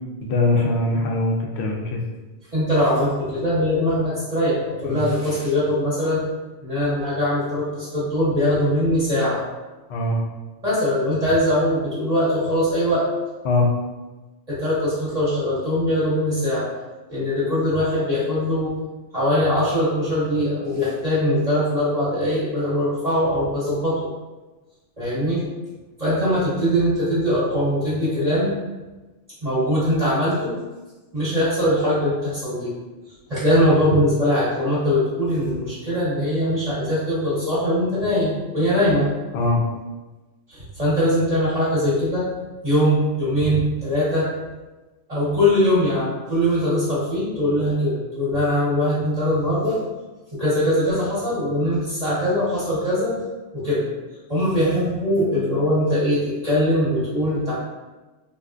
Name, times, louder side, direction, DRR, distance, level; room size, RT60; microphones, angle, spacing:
voice 1, 0.2-2.0 4.8-5.0 9.9-10.2 13.4-13.7 39.3-39.6, left 2 dB, 70° left, 1 dB, 0.8 m, -21 dB
voice 2, 2.5-6.2 6.6-9.4 10.6-13.1 14.5-16.7 17.1-18.7 19.1-24.0 25.0-25.4 26.0-28.5 29.4-30.5 31.1-32.7 33.3-39.1 40.5-42.3 42.6-44.3 45.1-49.8 50.3-53.1 53.5-53.9 54.3-57.5, equal, 35° right, -10 dB, 1.0 m, -21 dB
3.4 x 2.4 x 2.4 m, 1.2 s
omnidirectional pair, 1.2 m